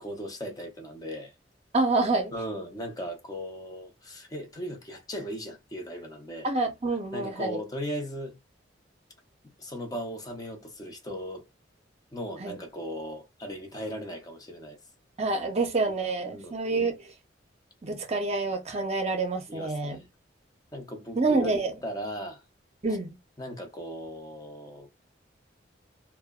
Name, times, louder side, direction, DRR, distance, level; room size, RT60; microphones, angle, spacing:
voice 1, 0.0-1.3 2.3-6.5 7.1-8.4 9.4-11.4 12.1-14.8 16.2-16.6 19.5-20.1 20.7-21.5 21.8-22.4 23.4-24.9, equal, 20° left, 0.6 m, -37 dB
voice 2, 1.7-2.3 6.4-7.6 12.4-12.5 15.2-17.1 17.8-20.0 21.1-21.7 22.8-23.1, right 3 dB, 35° right, 0.6 m, -27 dB
2.6 x 2.1 x 2.3 m
head